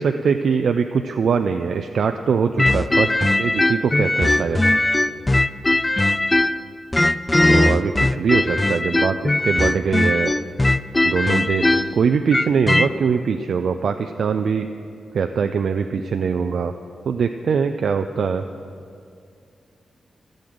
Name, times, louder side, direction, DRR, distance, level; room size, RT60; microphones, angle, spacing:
voice 1, 0.0-4.6 7.5-10.3 11.0-14.7 15.1-16.7 17.1-18.4, right 6 dB, 70° right, 7 dB, 0.4 m, -22 dB
sound 1, 2.6-6.6 6.9-12.9, left 2 dB, 20° left, 0.3 m, -19 dB
14.0 x 6.5 x 7.8 m, 2.4 s
cardioid pair, 95°, 0 cm